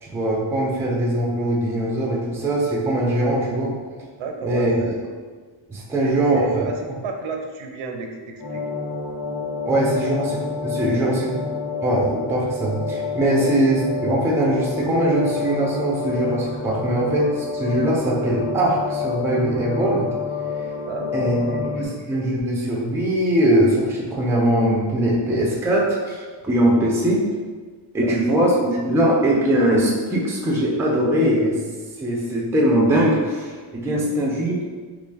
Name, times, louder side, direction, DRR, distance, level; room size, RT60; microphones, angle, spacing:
voice 1, 0.0-3.7 4.4-4.7 5.7-6.6 9.7-11.3 11.8-20.1 21.1-27.2 27.9-31.6 32.0-34.6, right 1 dB, 5° right, -4 dB, 0.3 m, -21 dB
voice 2, 4.2-5.0 6.0-8.6 11.0-11.1 13.3-13.5 20.8-21.7 28.0-28.4 33.9-34.1, right 4 dB, 80° right, 3 dB, 0.6 m, -32 dB
sound 1, 8.4-21.8, left 5 dB, 50° left, 0.9 m, -29 dB
2.9 x 2.8 x 3.7 m, 1.5 s
wide cardioid pair, 180°, 48 cm